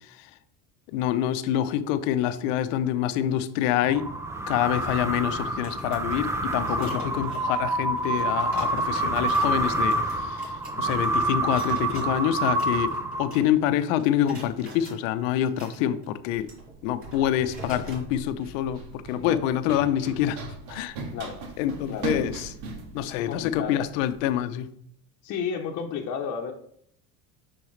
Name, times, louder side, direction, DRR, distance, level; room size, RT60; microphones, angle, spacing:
voice 1, 0.9-4.1 4.5-10.5 10.8-16.5 16.8-20.4 20.7-21.0 21.6-22.5 22.9-24.7, left 11 dB, 80° left, 0.8 m, -26 dB
sound 1, 3.8-13.6, right 2 dB, 10° right, 0.4 m, -27 dB
sound 2, 5.5-13.7 14.0-15.0 15.5-18.1, right 2 dB, 35° right, 3.2 m, -46 dB
Run, 16.3-24.3, right 3 dB, 75° right, 1.9 m, -40 dB
voice 2, 23.2-23.9 25.2-26.5, left 6 dB, 45° left, 0.9 m, -33 dB
8.6 x 6.2 x 3.2 m
cardioid pair, 140°, 38 cm